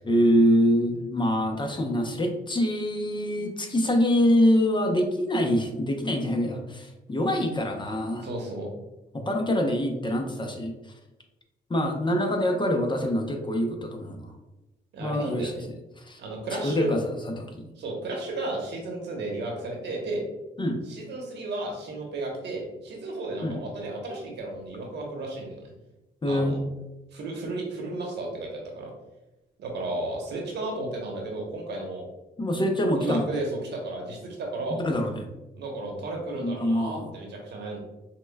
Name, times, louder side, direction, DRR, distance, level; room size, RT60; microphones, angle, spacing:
voice 1, 0.0-8.3 9.1-10.7 11.7-14.3 15.0-15.5 16.0-16.2 16.6-17.7 20.6-20.8 23.4-23.6 26.2-26.6 32.4-33.3 34.8-35.2 36.4-37.1, equal, 25° left, 3 dB, 0.6 m, -25 dB
voice 2, 8.2-8.7 14.9-15.6 16.2-16.9 17.8-20.2 20.8-25.6 26.3-26.6 27.1-28.9 29.6-32.0 32.9-34.8 35.5-37.8, right 2 dB, 70° right, 0 dB, 1.0 m, -33 dB
5.8 x 2.2 x 2.2 m, 1.0 s
cardioid pair, 70°, 18 cm